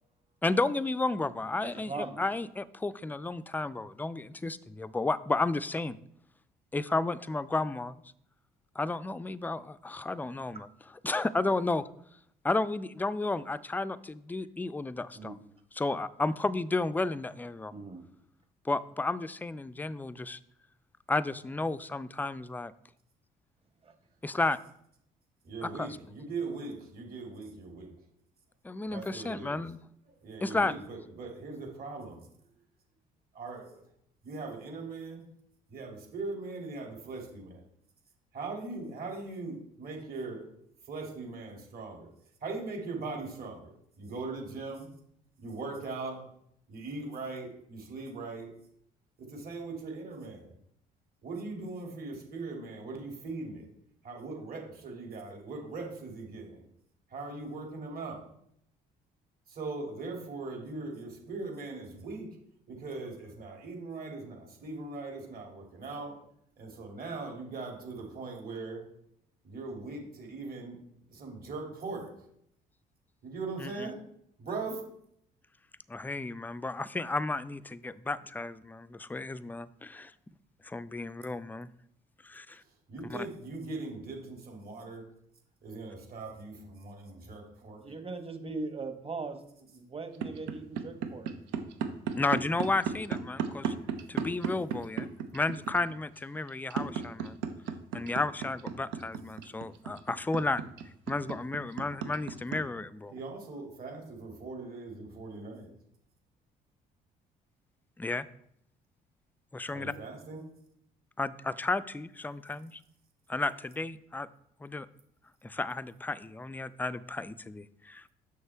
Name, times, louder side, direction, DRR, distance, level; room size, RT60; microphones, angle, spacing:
voice 1, 0.4-6.0 6.7-8.0 8.8-10.7 11.0-11.8 12.4-15.3 15.7-17.7 18.6-20.4 21.1-22.7 24.2-24.6 25.6-25.9 28.6-29.8 30.4-30.7 73.6-73.9 75.9-80.1 80.6-81.7 82.2-82.6 83.1-83.3 92.2-93.7 94.1-97.4 97.9-100.6 101.1-103.1 108.0-108.3 109.5-109.9 111.2-112.8 113.3-114.3 114.6-114.9 115.4-118.1, left 3 dB, 10° left, 15 dB, 0.4 m, -32 dB
voice 2, 1.6-2.2 15.1-15.3 17.7-18.0 23.8-23.9 87.6-89.4 89.7-91.3, right 3 dB, 30° right, 7 dB, 1.2 m, -39 dB
voice 3, 25.4-27.9 28.9-29.6 30.2-32.3 33.3-33.8 34.2-35.3 35.7-37.6 38.3-40.5 40.8-42.1 42.4-44.9 45.4-46.3 46.7-48.5 49.2-50.5 51.2-53.7 54.0-56.6 57.1-58.3 59.5-62.4 62.7-66.2 66.6-68.8 69.4-70.8 71.1-72.2 73.2-74.0 74.4-74.9 82.6-85.1 85.6-87.8 103.1-105.7 109.7-110.5, right 3 dB, 55° right, 0 dB, 2.7 m, -40 dB
sound 1, 90.2-102.6, right 8 dB, 85° right, 0.7 m, -33 dB
6.5 x 6.4 x 3.4 m, 0.72 s
supercardioid pair, 60°, 19 cm